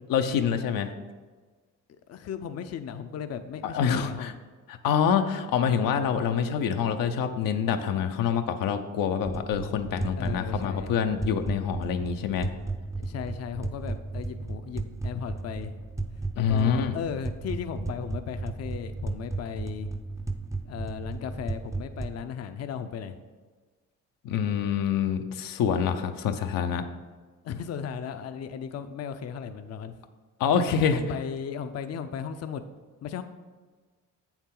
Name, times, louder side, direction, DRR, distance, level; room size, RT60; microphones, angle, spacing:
voice 1, 0.1-0.9 3.6-4.3 4.7-12.5 16.4-17.0 24.2-26.8 30.4-31.0, left 7 dB, 85° left, 6 dB, 0.7 m, -26 dB
voice 2, 2.1-4.4 10.2-10.9 13.0-15.8 16.3-19.9 20.6-23.2 27.4-30.0 30.9-32.6 33.0-33.2, left 7 dB, 50° left, 9 dB, 0.5 m, -36 dB
sound 1, 9.2-22.2, right 3 dB, 10° right, 0.5 m, -35 dB
8.0 x 7.2 x 3.8 m, 1.4 s
cardioid pair, 90°, 33 cm